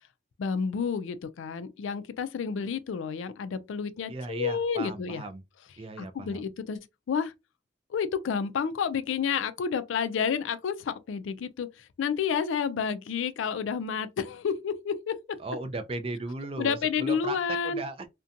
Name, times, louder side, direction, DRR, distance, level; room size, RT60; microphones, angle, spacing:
voice 1, 0.4-5.2 6.0-7.3 7.9-15.2 16.6-17.8, left 6 dB, 80° left, 0.3 m, -30 dB
voice 2, 4.1-5.4 5.8-6.5 15.4-17.4 17.6-18.1, right 2 dB, 30° right, 0.3 m, -36 dB
2.6 x 2.2 x 2.5 m
head